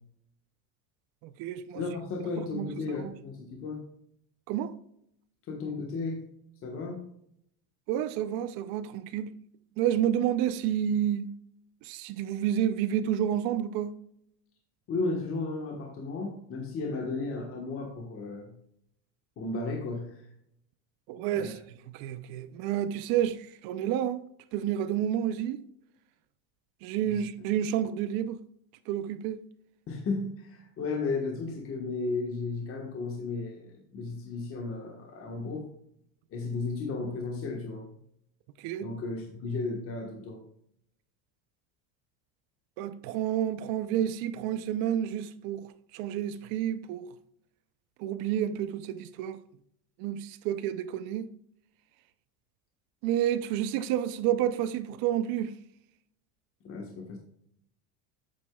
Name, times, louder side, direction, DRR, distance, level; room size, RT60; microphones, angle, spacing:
voice 1, 1.2-1.8 2.5-3.1 4.5-4.7 7.9-9.3 9.8-11.3 11.8-13.9 21.1-21.6 21.9-24.2 24.5-25.6 26.8-28.4 28.9-29.4 38.6-38.9 42.8-45.7 45.9-47.0 48.0-49.4 50.0-51.3 53.0-55.5, right 10 dB, 55° right, 0.6 m, -30 dB
voice 2, 1.7-3.8 5.5-6.2 6.6-7.0 14.9-18.5 19.4-20.3 21.3-21.6 27.0-27.2 29.9-35.7 36.3-37.8 38.8-40.4 56.6-57.2, left 3 dB, 30° left, 1.3 m, -34 dB
8.5 x 8.0 x 2.3 m
cardioid pair, 150°, 43 cm